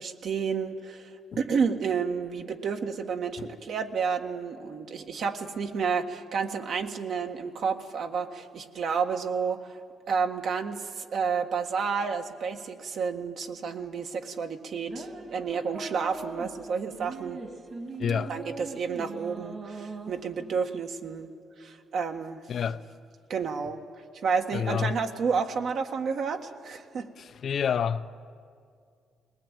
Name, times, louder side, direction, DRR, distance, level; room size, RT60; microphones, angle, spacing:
voice 1, 0.0-9.7 10.1-17.4 18.2-21.3 21.6-22.4 23.3-23.8 24.2-27.1, right 5 dB, 65° right, 4 dB, 1.6 m, -30 dB
sound 1, 14.9-20.8, right 3 dB, 45° right, 2.1 m, -41 dB
voice 2, 18.0-18.3 22.5-22.8 24.5-24.9 27.2-28.1, left 7 dB, 60° left, 11 dB, 0.7 m, -28 dB
20.5 x 19.5 x 9.1 m, 2.2 s
cardioid pair, 90°, 0 cm